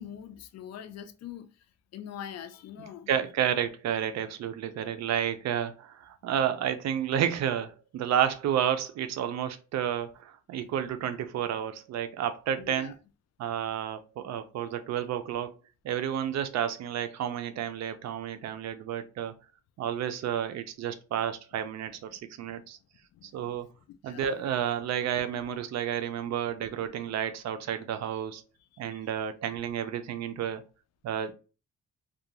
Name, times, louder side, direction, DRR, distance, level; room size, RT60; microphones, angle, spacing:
voice 1, 0.0-1.5 1.9-3.1 12.6-12.9 23.1-23.5 23.9-24.3 28.9-29.0, left 9 dB, 60° left, 0.4 m, -43 dB
voice 2, 3.1-13.0 13.4-15.5 15.8-19.3 19.8-22.8 23.2-23.7 24.0-28.4 28.8-30.6 31.0-31.3, right 9 dB, 65° right, 0.5 m, -31 dB
2.4 x 2.2 x 2.8 m
cardioid pair, 90°, 30 cm